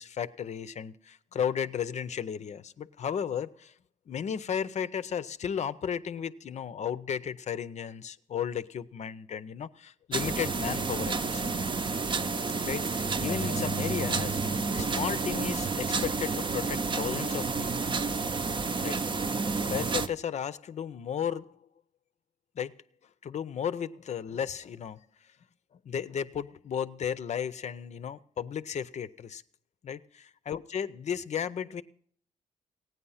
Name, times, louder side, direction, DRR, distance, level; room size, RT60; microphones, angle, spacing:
voice 1, 0.0-3.7 4.1-11.5 12.6-17.7 18.8-19.3 19.7-21.6 22.6-22.7 23.2-25.0 25.8-29.4 29.8-30.0 30.5-31.8, left 8 dB, 55° left, 0.6 m, -34 dB
sound 1, 10.1-20.1, right 4 dB, 35° right, 0.7 m, -30 dB
16.0 x 9.4 x 5.6 m
cardioid pair, 70°, 14 cm